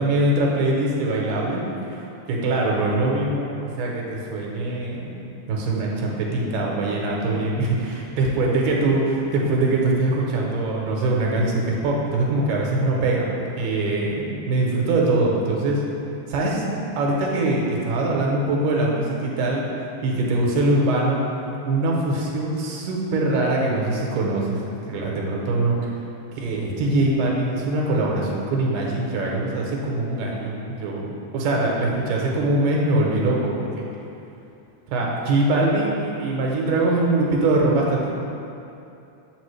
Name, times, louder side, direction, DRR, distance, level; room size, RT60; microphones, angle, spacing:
voice 1, 0.0-15.8 16.3-16.6 17.0-19.6 20.0-21.2 21.7-25.8 26.4-33.9 34.9-38.1, right 2 dB, 85° right, -2 dB, 2.3 m, -23 dB
6.7 x 5.0 x 3.2 m, 2.7 s
omnidirectional pair, 3.6 m